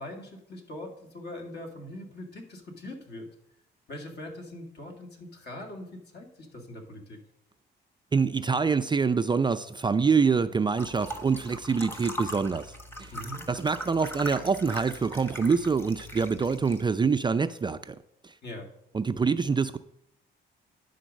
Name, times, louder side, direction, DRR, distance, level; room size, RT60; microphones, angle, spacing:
voice 1, 0.0-3.3 3.9-7.2 13.1-13.4 18.4-18.7, left 1 dB, 55° left, 2.1 m, -42 dB
voice 2, 8.1-12.6 13.0-13.1 13.5-18.0 18.9-19.8, right 5 dB, 25° right, 0.4 m, -25 dB
sound 1, 10.8-16.8, equal, 10° left, 1.1 m, -40 dB
10.0 x 3.9 x 6.3 m
cardioid pair, 90°, 20 cm